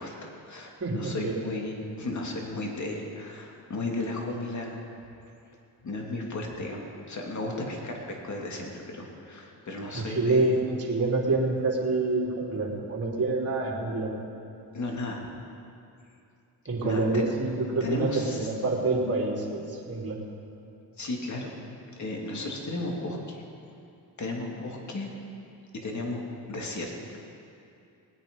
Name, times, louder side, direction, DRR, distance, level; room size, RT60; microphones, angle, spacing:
voice 1, 0.0-4.8 5.8-10.6 14.7-15.2 16.8-17.3 17.8-18.5 21.0-21.5 22.0-23.4 24.2-25.1 25.7-26.2 26.5-26.9, left 2 dB, 45° left, 0 dB, 2.9 m, -34 dB
voice 2, 0.8-1.4 9.9-14.1 16.7-20.2, right 3 dB, 35° right, -3 dB, 3.5 m, -27 dB
19.5 x 9.0 x 5.4 m, 2.6 s
supercardioid pair, 60°, 40 cm